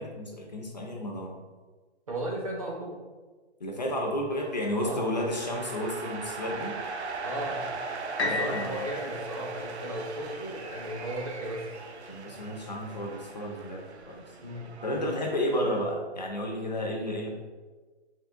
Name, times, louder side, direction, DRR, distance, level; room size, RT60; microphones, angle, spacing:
voice 1, 0.0-1.4 3.6-6.7 8.2-8.8 12.1-14.2 14.8-17.3, equal, 40° left, 0 dB, 0.4 m, -32 dB
voice 2, 2.1-3.0 4.8-5.1 7.2-7.7 8.2-11.7 14.4-14.7, right 1 dB, 35° right, -2 dB, 0.6 m, -35 dB
sound 1, 4.3-15.8, right 4 dB, 80° right, 0.6 m, -40 dB
sound 2, 8.2-12.1 12.7-12.8, left 2 dB, 75° left, 0.8 m, -36 dB
3.6 x 3.3 x 2.5 m, 1.3 s
hypercardioid pair, 165°, 33 cm